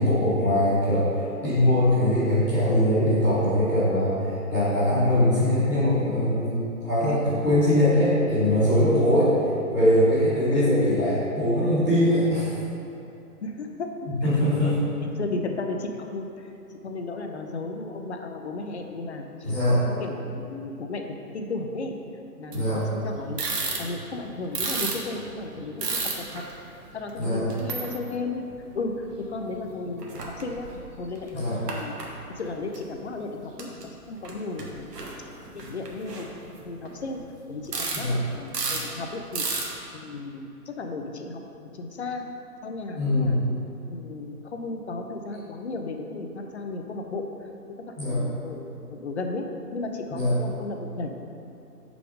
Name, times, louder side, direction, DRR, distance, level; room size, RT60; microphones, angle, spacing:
voice 1, 0.0-9.3 9.7-12.5 14.2-14.8 19.4-19.8 22.5-22.8 27.2-27.5 31.3-31.6 37.9-38.2 42.9-43.4 47.9-48.2 50.1-50.3, left 1 dB, 5° left, -16 dB, 0.8 m, -22 dB
voice 2, 13.4-13.9 14.5-14.7 15.0-16.5 16.8-19.2 19.9-21.0 21.3-22.0 22.4-22.6 22.9-23.4 23.8-26.4 26.9-28.4 28.7-30.7 31.0-31.9 32.3-33.7 34.1-34.8 35.5-36.3 36.7-37.2 37.5-39.4 39.9-42.2 42.6-43.4 43.9-47.3 48.0-49.5 49.7-51.1, left 3 dB, 45° left, 4 dB, 0.6 m, -34 dB
sound 1, 22.5-22.8 23.1-24.2 24.5-26.5 27.1-27.2 27.5-28.1 28.6-29.4 29.6-29.7 29.9-30.8 31.1-32.1 32.7-32.8 33.6-33.9 34.2-34.3 34.6-37.2 37.7-38.1 38.3-38.9 39.3-39.7, right 4 dB, 85° right, 1.3 m, -31 dB
5.0 x 4.9 x 5.2 m, 2.7 s
hypercardioid pair, 165°, 46 cm